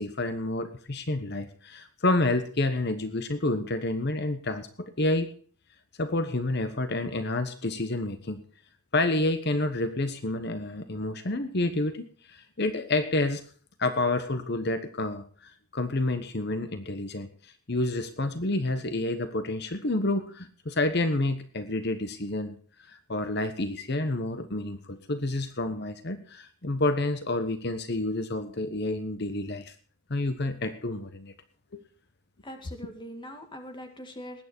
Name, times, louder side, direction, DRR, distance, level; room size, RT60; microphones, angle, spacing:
voice 1, 0.0-5.3 6.0-8.4 8.9-13.4 13.8-17.3 17.7-22.6 22.9-29.7 30.1-31.3 31.7-31.8, left 2 dB, 50° left, 10 dB, 1.1 m, -29 dB
voice 2, 32.4-34.4, equal, 20° left, 5 dB, 2.0 m, -42 dB
19.5 x 9.3 x 4.4 m, 0.44 s
head